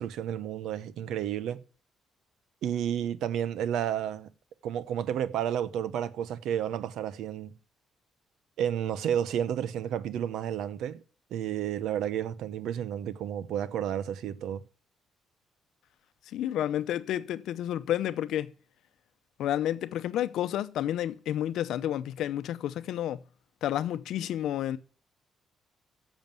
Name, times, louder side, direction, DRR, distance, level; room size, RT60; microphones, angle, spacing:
voice 1, 0.0-1.6 2.6-4.3 4.6-7.6 8.6-11.0 11.3-14.6, right 10 dB, 80° right, 0.8 m, -31 dB
voice 2, 16.3-18.5 19.4-23.2 23.6-24.8, left 11 dB, 80° left, 0.7 m, -30 dB
10.5 x 7.3 x 9.0 m
cardioid pair, 90°, 0 cm